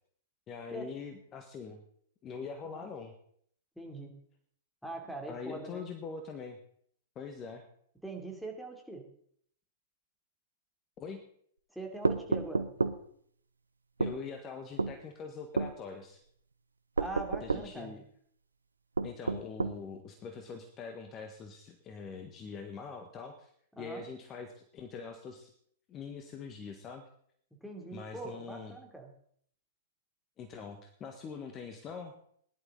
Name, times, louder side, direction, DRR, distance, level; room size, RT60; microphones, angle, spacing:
voice 1, 0.5-1.8 2.2-3.1 5.3-6.6 7.1-7.6 11.0-11.2 14.0-16.2 17.4-18.0 19.0-23.5 23.8-25.5 25.9-27.0 27.9-28.7 30.4-32.1, left 5 dB, 25° left, 6 dB, 1.5 m, -43 dB
voice 2, 3.8-4.1 4.8-5.9 8.0-9.0 11.7-12.6 17.0-17.9 23.8-24.1 27.6-29.1, right 2 dB, ahead, 3 dB, 3.0 m, -42 dB
sound 1, 12.0-13.0 14.0-14.2 14.8-15.0 15.6-15.7 17.0-17.7 19.0-19.8, right 3 dB, 85° right, 0.8 m, -30 dB
18.5 x 11.5 x 3.9 m, 0.65 s
figure-of-eight pair, 105°, 0 cm